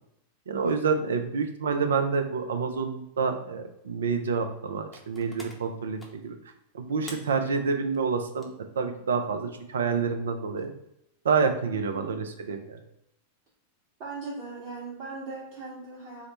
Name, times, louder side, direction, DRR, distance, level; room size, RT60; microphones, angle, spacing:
voice 1, 0.5-6.3 6.7-8.5 8.8-10.7 11.2-12.8, right 5 dB, 65° right, 6 dB, 0.4 m, -28 dB
sound 1, 4.9-6.3 6.6-6.7 6.9-7.2 7.7-8.0 8.4-8.6 10.6-10.7, left 1 dB, 5° left, 0.7 m, -46 dB
voice 2, 11.7-12.1 14.0-16.3, right 3 dB, 40° right, -7 dB, 1.0 m, -39 dB
2.9 x 2.0 x 4.1 m, 0.81 s
figure-of-eight pair, 90°, 0 cm